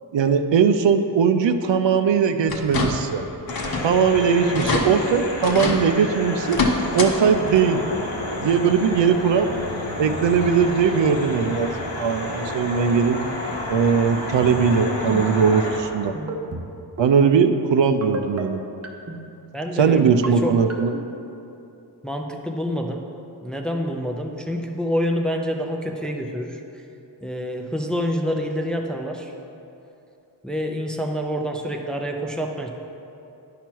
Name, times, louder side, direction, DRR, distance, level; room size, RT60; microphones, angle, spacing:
voice 1, 0.1-3.2 3.8-6.6 6.9-7.8 8.4-9.5 10.0-11.7 12.0-13.2 13.7-16.2 17.0-18.6 19.8-20.9, right 6 dB, 75° right, 8 dB, 0.6 m, -19 dB
sound 1, 2.5-3.2 3.5-3.9 4.2-4.3 4.5-4.9 5.4-5.8 6.4-7.1 7.5-7.6 9.0-9.1 9.6-9.7, left 3 dB, 55° left, 0.9 m, -25 dB
sound 2, 3.5-15.8, left 1 dB, 90° left, 1.4 m, -30 dB
sound 3, 14.3-14.8 15.1-15.4 16.1-16.6 17.0-17.2 18.0-18.4 18.8-19.2 19.9-20.3 20.7-21.0, right 3 dB, 35° right, 0.7 m, -30 dB
voice 2, 19.5-20.6 22.0-23.0 23.4-26.6 27.2-29.3 30.4-32.7, equal, ahead, 3 dB, 0.5 m, -27 dB
10.0 x 5.8 x 4.5 m, 2.8 s
wide cardioid pair, 130°, 44 cm